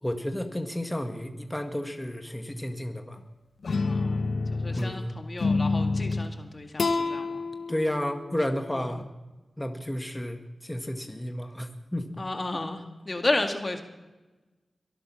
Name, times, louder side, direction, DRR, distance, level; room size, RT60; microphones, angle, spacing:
voice 1, 0.0-3.2 4.7-5.2 7.7-9.0 9.6-12.2, left 1 dB, 10° left, 5 dB, 1.7 m, -32 dB
sound 1, 3.6-4.9 5.4-6.3 6.8-9.0, left 3 dB, 70° left, 1.0 m, -28 dB
voice 2, 3.8-7.5 8.8-8.9 12.2-13.8, left 2 dB, 40° left, 5 dB, 1.9 m, -32 dB
22.5 x 7.9 x 6.4 m, 1.1 s
cardioid pair, 40°, 0 cm